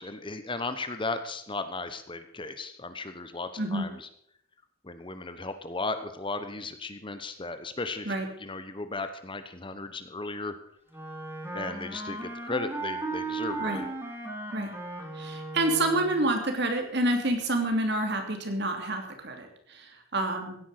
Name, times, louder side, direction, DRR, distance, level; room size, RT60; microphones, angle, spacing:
voice 1, 0.0-4.1 4.8-10.5 11.5-13.9, left 3 dB, 25° left, 10 dB, 1.0 m, -35 dB
voice 2, 3.6-3.9 8.1-8.3 13.6-13.8 14.5-14.7 15.1-20.6, right 1 dB, 55° right, 4 dB, 3.0 m, -28 dB
Wind instrument woodwind instrument, 10.9-16.3, right 3 dB, 10° right, 3.2 m, -36 dB
16.0 x 10.0 x 6.7 m, 0.69 s
head